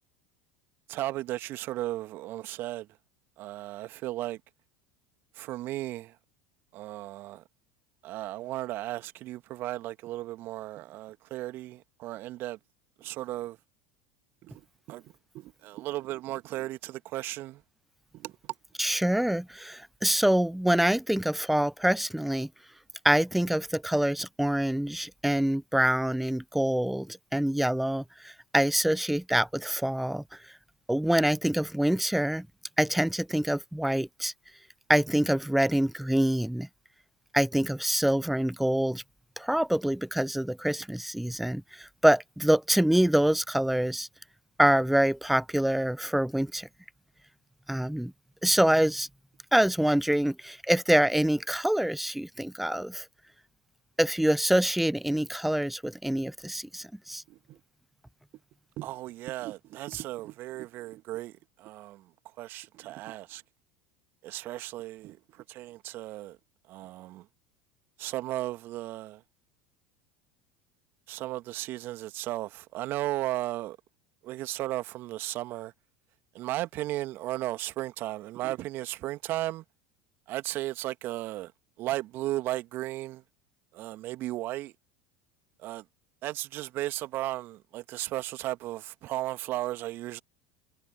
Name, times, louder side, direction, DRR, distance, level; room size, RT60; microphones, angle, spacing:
voice 1, 0.9-2.9 3.4-4.4 5.3-6.1 6.7-7.4 8.0-12.6 13.0-13.6 14.4-14.6 14.9-17.6 18.1-18.4 57.3-57.6 58.8-62.1 62.4-63.4 64.2-66.4 66.7-67.3 68.0-69.2 71.1-73.8 74.2-75.7 76.3-79.6 80.3-81.5 81.8-83.2 83.7-84.7 85.6-85.8 86.2-90.2, right 16 dB, 45° right, 2.1 m, -35 dB
voice 2, 18.8-22.5 23.0-30.4 30.9-32.5 32.8-34.3 34.9-36.7 37.3-39.0 39.4-44.1 44.6-46.7 47.7-48.1 48.4-49.1 49.5-53.0 54.0-57.2, right 1 dB, ahead, 0.8 m, -25 dB
figure-of-eight pair, 75°, 5 cm